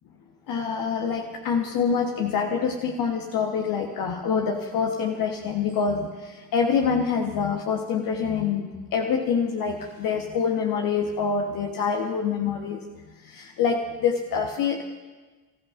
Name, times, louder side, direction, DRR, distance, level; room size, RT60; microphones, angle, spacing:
voice 1, 0.5-12.8 13.2-14.8, left 6 dB, 45° left, 2 dB, 1.3 m, -26 dB
28.5 x 15.5 x 2.6 m, 1.3 s
figure-of-eight pair, 50°, 46 cm